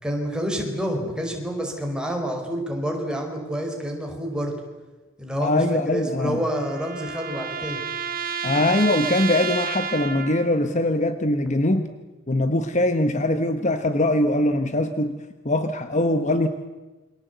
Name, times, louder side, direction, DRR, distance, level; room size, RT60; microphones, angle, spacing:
voice 1, 0.0-4.5 5.2-7.8, equal, 5° right, 2 dB, 4.8 m, -28 dB
voice 2, 5.4-6.4 8.4-11.9 12.3-15.2 15.4-16.5, left 1 dB, 35° left, 9 dB, 1.3 m, -22 dB
sound 1, 5.9-10.6, right 6 dB, 40° right, 1.5 m, -31 dB
28.5 x 24.0 x 8.2 m, 1.2 s
head